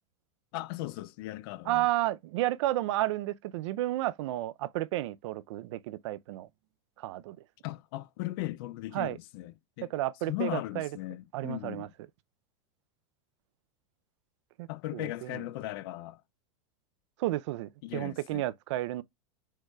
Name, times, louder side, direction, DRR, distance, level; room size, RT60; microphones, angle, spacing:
voice 1, 0.5-1.9 7.6-9.9 10.3-11.9 14.7-16.2 17.8-18.5, left 16 dB, 45° left, 0.4 m, -37 dB
voice 2, 1.7-6.5 7.0-7.4 8.9-9.2 9.9-10.9 11.3-11.9 14.6-15.4 17.2-19.0, right 15 dB, 60° right, 0.4 m, -32 dB
4.6 x 4.6 x 2.3 m
supercardioid pair, 160°, 17 cm